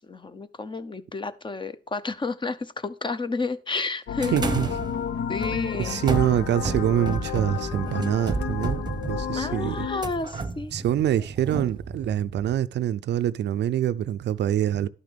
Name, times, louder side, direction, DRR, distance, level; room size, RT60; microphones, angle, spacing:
voice 1, 0.1-4.5 5.3-6.0 9.4-10.7, left 3 dB, 25° left, 0.7 m, -31 dB
sound 1, 4.1-10.0, left 8 dB, 60° left, 0.7 m, -31 dB
sound 2, 4.2-12.6, right 3 dB, 20° right, 0.9 m, -32 dB
voice 2, 4.3-4.7 5.5-8.8 9.1-9.9 10.3-10.4 10.7-14.9, right 11 dB, 60° right, 0.5 m, -25 dB
11.5 x 5.9 x 3.4 m
cardioid pair, 90°, 20 cm